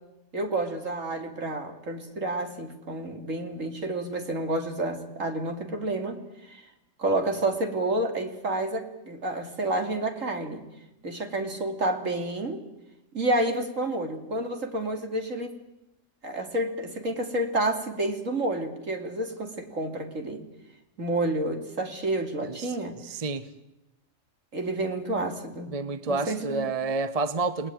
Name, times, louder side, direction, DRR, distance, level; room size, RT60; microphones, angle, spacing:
voice 1, 0.3-6.6 7.0-10.6 11.0-12.6 13.1-15.5 16.2-20.4 21.0-23.0 24.5-25.7 26.1-26.7, right 1 dB, 70° right, 3.2 m, -29 dB
voice 2, 22.4-23.5 25.7-27.7, right 3 dB, 30° right, 1.1 m, -30 dB
29.0 x 19.0 x 9.3 m
omnidirectional pair, 1.4 m